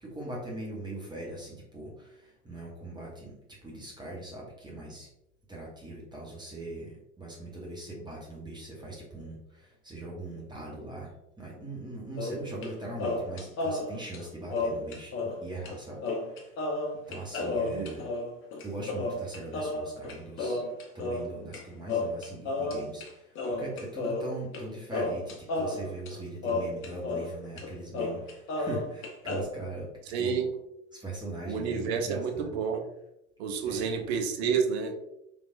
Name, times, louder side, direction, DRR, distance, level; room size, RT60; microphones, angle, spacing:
voice 1, 0.0-5.1 5.5-16.0 16.4-16.5 16.9-18.1 18.6-20.6 20.9-29.9 30.2-30.4 30.9-32.6 33.6-34.1, right 2 dB, 10° right, -4 dB, 0.8 m, -41 dB
sound 1, 12.2-12.7 13.0-15.4 15.7-15.8 16.0-21.6 21.9-23.1 23.4-24.6 24.9-27.3 27.6-27.7 27.9-29.4, left 2 dB, 30° left, 0.8 m, -32 dB
voice 2, 17.6-17.9 30.1-30.5 31.4-32.8 33.4-34.9, right 6 dB, 50° right, 4 dB, 0.7 m, -29 dB
3.4 x 3.1 x 2.5 m, 0.84 s
figure-of-eight pair, 85°, 39 cm